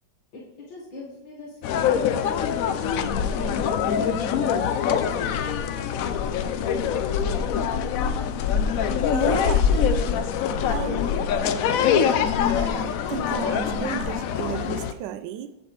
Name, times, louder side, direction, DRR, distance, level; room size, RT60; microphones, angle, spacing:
voice 1, 0.3-3.5 3.9-4.7, left 2 dB, 75° left, -6 dB, 2.3 m, -40 dB
sound 1, 1.6-14.9, left 7 dB, 90° left, 0.7 m, -24 dB
voice 2, 9.1-10.2 10.7-11.1 12.5-15.6, right 10 dB, 75° right, 12 dB, 1.2 m, -34 dB
8.3 x 7.2 x 3.2 m, 1.1 s
omnidirectional pair, 2.0 m